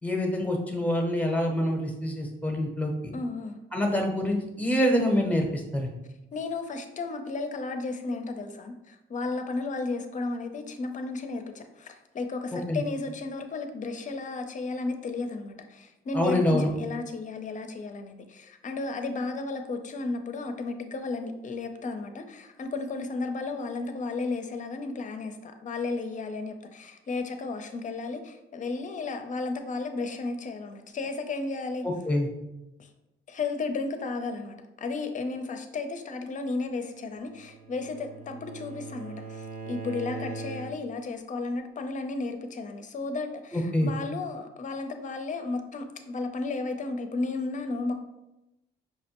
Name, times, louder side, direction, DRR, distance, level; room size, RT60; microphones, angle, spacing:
voice 1, 0.0-3.1 3.7-6.0 12.7-12.8 16.1-16.7 31.8-32.3 43.5-43.9, left 1 dB, 5° left, 2 dB, 0.8 m, -26 dB
voice 2, 3.1-3.6 6.3-31.9 32.8-32.9 33.3-47.9, left 3 dB, 40° left, 6 dB, 0.5 m, -33 dB
Bowed string instrument, 37.1-41.1, right 3 dB, 50° right, 0.7 m, -40 dB
5.5 x 2.1 x 2.9 m, 0.95 s
cardioid pair, 90°, 20 cm